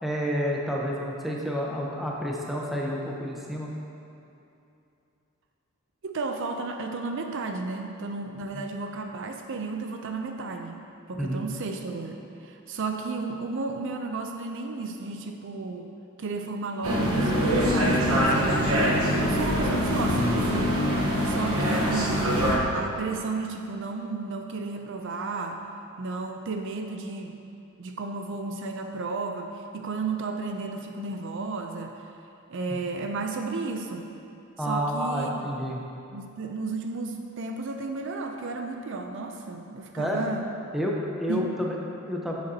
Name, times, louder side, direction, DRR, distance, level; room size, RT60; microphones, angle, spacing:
voice 1, 0.0-3.7 8.5-8.6 11.1-11.5 32.7-32.8 34.6-35.8 40.0-40.2 40.7-41.8 42.1-42.4, equal, ahead, -3 dB, 0.8 m, -29 dB
voice 2, 6.0-10.8 11.1-15.9 16.2-22.3 22.7-25.6 26.0-27.4 27.8-32.0 32.5-34.1 34.6-35.4 36.1-40.5 41.3-41.7, right 3 dB, 60° right, 4 dB, 0.5 m, -33 dB
sound 1, 16.8-22.6, equal, 80° right, 1.1 m, -24 dB
9.2 x 7.9 x 2.8 m, 2.8 s
head